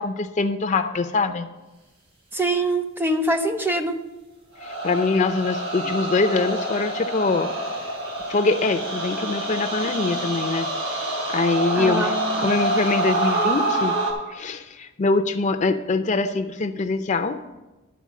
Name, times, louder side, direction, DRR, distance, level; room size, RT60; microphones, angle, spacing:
voice 1, 0.0-1.5 4.6-7.5 8.3-10.7 11.3-14.0 14.3-17.4, left 3 dB, 35° left, 8 dB, 0.5 m, -23 dB
voice 2, 2.3-4.0 11.7-12.5, right 1 dB, 10° right, 7 dB, 0.6 m, -24 dB
sound 1, 4.6-14.1, right 2 dB, 80° right, 2.9 m, -26 dB
11.0 x 4.4 x 7.4 m, 1.1 s
head